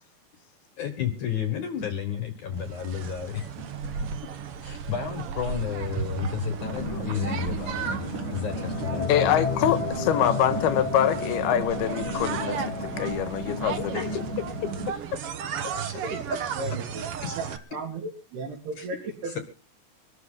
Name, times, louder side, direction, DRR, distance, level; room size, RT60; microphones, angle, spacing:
voice 1, 0.8-3.5 4.6-8.0 8.3-9.6 13.8-14.1 14.5-14.6 16.3-16.8 17.6-17.7 18.8-18.9 19.2-19.4, left 8 dB, 60° left, 7 dB, 2.4 m, -32 dB
sound 1, 2.5-17.6, right 7 dB, 70° right, 1.4 m, -34 dB
sound 2, 6.6-14.9, left 3 dB, 40° left, 1.7 m, -32 dB
voice 2, 9.1-14.0, left 10 dB, 85° left, 9 dB, 3.3 m, -25 dB
voice 3, 15.7-16.3 16.6-17.0 17.4-19.0 19.2-19.3, right 2 dB, 85° right, -3 dB, 5.3 m, -35 dB
24.0 x 13.0 x 3.8 m, 0.36 s
omnidirectional pair, 4.5 m